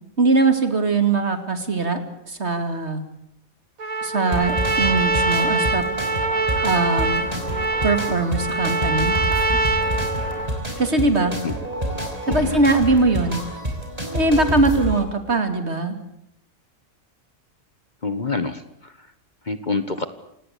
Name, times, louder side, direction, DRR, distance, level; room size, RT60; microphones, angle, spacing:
voice 1, 0.2-2.0 2.3-3.0 4.0-5.9 6.6-7.2 7.8-9.1 10.8-11.3 12.3-13.4 14.1-16.0, right 3 dB, 50° right, 8 dB, 3.0 m, -21 dB
Trumpet, 3.8-10.6, right 2 dB, 85° right, 2.2 m, -24 dB
sound 1, 4.3-15.0, right 1 dB, 25° right, 5.5 m, -28 dB
voice 2, 12.3-12.6 18.0-19.1 19.4-20.1, left 3 dB, 35° left, 11 dB, 1.4 m, -27 dB
28.0 x 17.5 x 8.4 m, 0.78 s
omnidirectional pair, 1.4 m